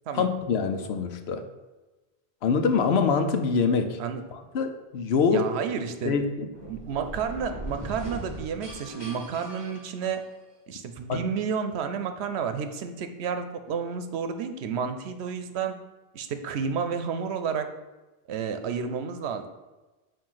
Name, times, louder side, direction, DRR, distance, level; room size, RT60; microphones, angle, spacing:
voice 1, 0.1-1.4 2.4-4.0 4.3-5.4 6.0-6.5 11.1-11.2, left 5 dB, 80° left, 7 dB, 0.9 m, -25 dB
voice 2, 5.2-6.2 6.7-10.2 10.7-15.7 16.1-17.7 18.3-19.5, right 6 dB, 85° right, 8 dB, 0.9 m, -31 dB
sound 1, 6.5-10.5, right 1 dB, 25° right, 1.5 m, -40 dB
7.3 x 2.7 x 5.6 m, 1.2 s
omnidirectional pair, 1.1 m